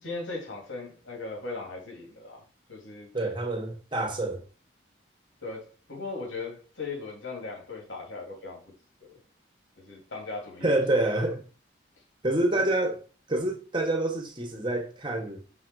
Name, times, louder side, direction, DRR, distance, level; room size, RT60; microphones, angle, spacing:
voice 1, 0.0-2.4 2.7-3.1 5.4-8.6 9.1-9.2 9.8-11.2 12.6-12.7, left 3 dB, 90° left, 2.7 m, -38 dB
voice 2, 3.1-4.4 10.6-11.4 12.2-13.0 13.3-15.4, right 1 dB, 25° right, 1.2 m, -27 dB
5.7 x 4.0 x 6.1 m
head